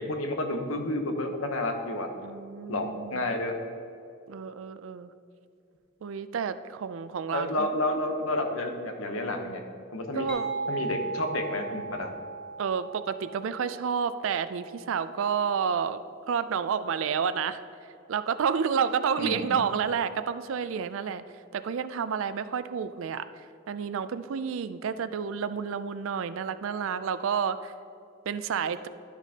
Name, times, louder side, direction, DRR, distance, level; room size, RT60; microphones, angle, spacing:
voice 1, 0.0-2.1 2.7-3.6 7.3-9.6 9.9-10.3 10.7-12.1 19.2-19.6, left 1 dB, 80° left, 4 dB, 0.9 m, -30 dB
voice 2, 2.2-3.3 4.3-5.1 6.0-7.7 10.1-10.5 12.6-16.0 16.3-17.6 18.1-21.2 21.5-23.2 23.7-27.7 28.3-28.9, right 6 dB, 70° right, 13 dB, 0.4 m, -30 dB
sound 1, 10.3-15.8, right 3 dB, 50° left, 0.8 m, -38 dB
12.0 x 6.0 x 2.8 m, 2.5 s
head